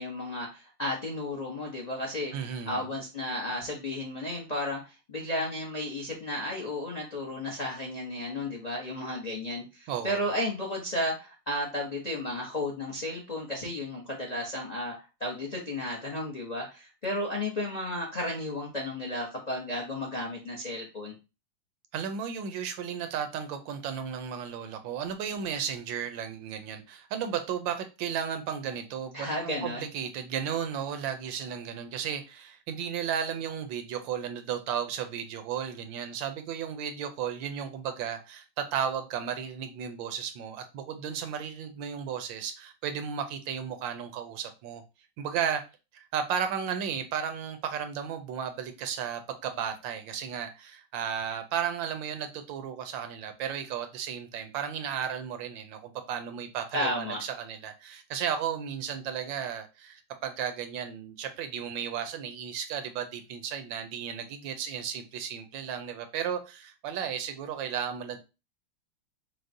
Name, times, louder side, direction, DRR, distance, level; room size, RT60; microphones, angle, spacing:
voice 1, 0.0-2.3 2.7-14.9 15.2-21.1 29.1-29.9 56.7-57.2, left 1 dB, 75° left, -1 dB, 0.3 m, -33 dB
voice 2, 2.3-2.8 9.9-10.2 21.9-44.8 45.2-45.6 45.9-68.2, right 8 dB, 80° right, 7 dB, 1.3 m, -34 dB
6.2 x 2.1 x 2.6 m, 0.29 s
omnidirectional pair, 2.1 m